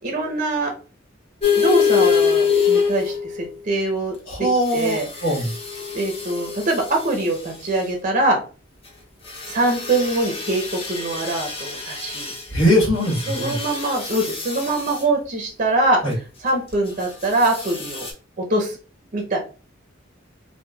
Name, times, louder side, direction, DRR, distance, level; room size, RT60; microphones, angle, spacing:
voice 1, 0.0-0.7 1.6-4.5 4.7-5.4 5.9-8.4 9.5-10.6 10.9-12.3 13.3-16.0 16.4-18.1 18.5-18.7 19.1-19.4, right 2 dB, 40° right, 2 dB, 0.5 m, -23 dB
sound 1, 1.4-3.5 4.7-7.1 9.3-12.4 13.0-15.0 17.4-18.1, left 6 dB, 30° left, 0.6 m, -24 dB
voice 2, 4.3-5.0 5.2-5.5 12.5-13.6 16.0-16.1, equal, 75° left, -3 dB, 1.3 m, -20 dB
3.1 x 2.2 x 2.2 m, 0.35 s
head